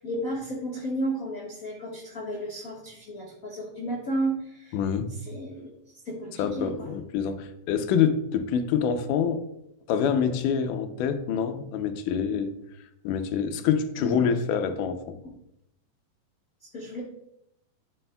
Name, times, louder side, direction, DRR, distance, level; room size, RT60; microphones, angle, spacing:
voice 1, 0.0-4.8 5.2-5.7 6.0-6.9 14.0-14.2 16.7-17.0, right 1 dB, 55° left, -4 dB, 0.9 m, -33 dB
voice 2, 4.7-5.1 6.4-9.4 9.9-12.5 13.0-15.2, left 7 dB, 80° left, 8 dB, 2.1 m, -26 dB
11.5 x 6.3 x 2.2 m, 0.81 s
omnidirectional pair, 3.9 m